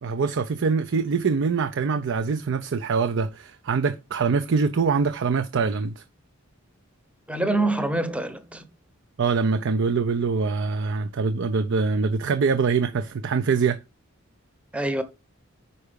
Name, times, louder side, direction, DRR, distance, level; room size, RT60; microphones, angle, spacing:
voice 1, 0.0-6.0 9.2-13.8, right 5 dB, 60° right, 0.5 m, -24 dB
voice 2, 7.3-8.6 14.7-15.0, right 2 dB, 5° right, 0.8 m, -25 dB
5.6 x 4.7 x 5.0 m
head